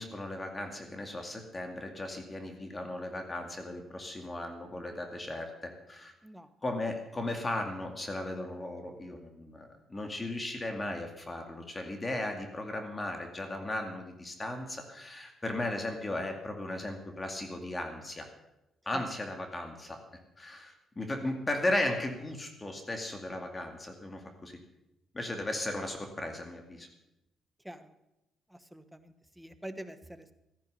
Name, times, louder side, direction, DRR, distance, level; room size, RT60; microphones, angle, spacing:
voice 1, 0.0-6.1 6.6-18.3 18.9-20.0 20.4-24.6 25.1-26.9, left 1 dB, 25° left, 4 dB, 2.2 m, -36 dB
voice 2, 28.5-30.3, right 1 dB, 5° right, 10 dB, 1.2 m, -45 dB
14.0 x 10.5 x 6.8 m, 0.90 s
cardioid pair, 90°, 0 cm